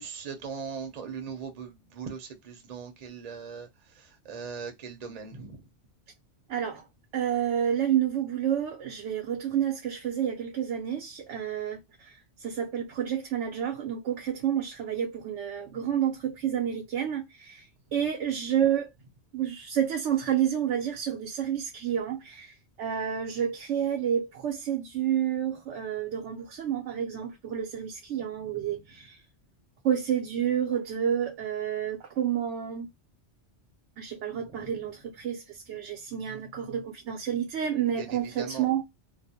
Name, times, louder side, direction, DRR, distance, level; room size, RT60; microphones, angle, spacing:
voice 1, 0.0-5.6 28.4-28.8 34.4-34.8 38.0-38.7, right 6 dB, 40° right, 0.6 m, -40 dB
voice 2, 6.5-6.8 7.1-17.7 17.9-18.9 19.3-29.2 29.8-32.9 34.0-38.8, right 9 dB, 80° right, 0.9 m, -29 dB
2.4 x 2.0 x 2.7 m
omnidirectional pair, 1.2 m